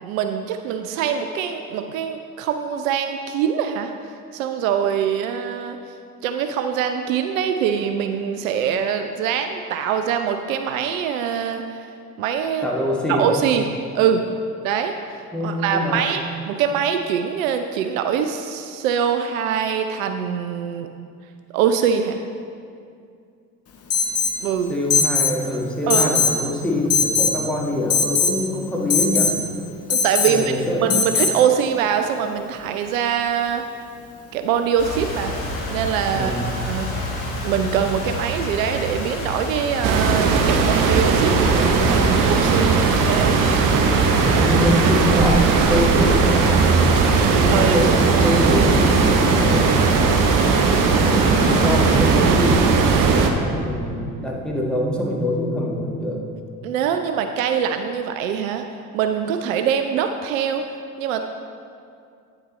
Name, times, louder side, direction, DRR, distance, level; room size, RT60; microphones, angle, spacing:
voice 1, 0.0-3.9 4.3-5.8 6.2-11.9 12.2-12.6 13.1-13.7 13.9-14.2 14.6-15.0 15.4-20.9 21.5-22.2 24.4-24.7 25.9-26.1 29.9-30.5 30.8-33.6 34.3-35.4 35.7-36.9 37.4-42.8 43.0-43.3 47.0-48.0 56.6-58.7 58.9-61.3, right 8 dB, 65° right, 7 dB, 0.5 m, -23 dB
voice 2, 12.6-13.3 15.3-16.1 24.7-29.4 30.2-31.1 36.1-36.5 44.1-46.6 47.2-50.1 51.0-56.2, left 1 dB, ahead, -3 dB, 1.6 m, -24 dB
Alarm, 23.9-24.4 24.9-25.4 25.9-26.4 26.9-27.4 27.9-28.4 28.9-29.4 29.9-30.4 30.9-31.4, left 5 dB, 35° left, 0.9 m, -19 dB
sound 1, 34.8-52.2, left 1 dB, 70° left, 1.5 m, -29 dB
sound 2, 39.8-53.3, right 5 dB, 45° right, 0.9 m, -18 dB
9.3 x 7.9 x 3.1 m, 2.4 s
figure-of-eight pair, 50°, 43 cm